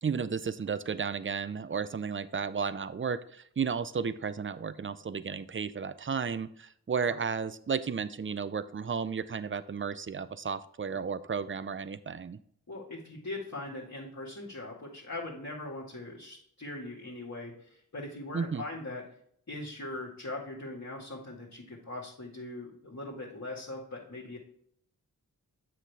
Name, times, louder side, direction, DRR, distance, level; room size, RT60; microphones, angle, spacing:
voice 1, 0.0-12.4 18.3-18.6, right 6 dB, 35° right, 16 dB, 0.5 m, -33 dB
voice 2, 12.7-19.0 19.5-24.4, left 2 dB, 50° left, -5 dB, 2.0 m, -41 dB
7.3 x 6.0 x 3.4 m, 0.67 s
cardioid pair, 40°, 37 cm